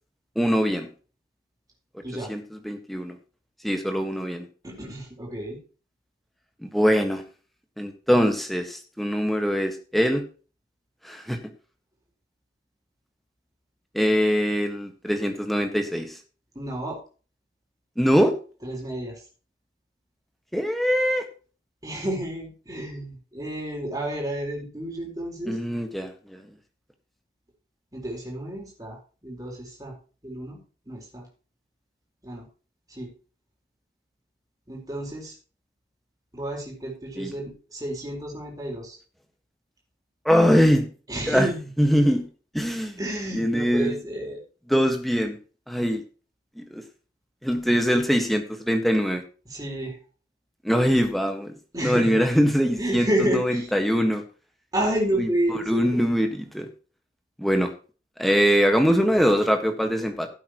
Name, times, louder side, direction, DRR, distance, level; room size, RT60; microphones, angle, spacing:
voice 1, 0.3-0.9 2.3-3.2 3.6-4.4 6.6-7.2 7.8-10.2 11.0-11.4 13.9-16.2 18.0-18.3 20.5-21.2 25.5-26.4 37.2-37.3 40.2-40.9 41.3-41.5 41.8-42.3 42.5-43.0 43.3-44.0 44.7-45.4 45.7-46.0 46.6-46.8 47.4-49.2 50.6-51.5 51.8-54.2 55.2-56.7 57.4-57.7 58.2-60.3, equal, ahead, 5 dB, 1.5 m, -22 dB
voice 2, 4.6-5.6 16.5-17.0 18.6-19.2 21.8-25.6 27.9-29.9 30.2-30.6 30.9-31.3 32.2-32.4 32.9-33.1 34.7-35.3 36.3-39.0 41.1-41.7 43.0-44.4 49.5-50.0 51.7-52.2 52.8-53.7 54.7-56.0, right 1 dB, 20° right, -1 dB, 4.3 m, -30 dB
16.0 x 8.5 x 3.0 m, 0.36 s
head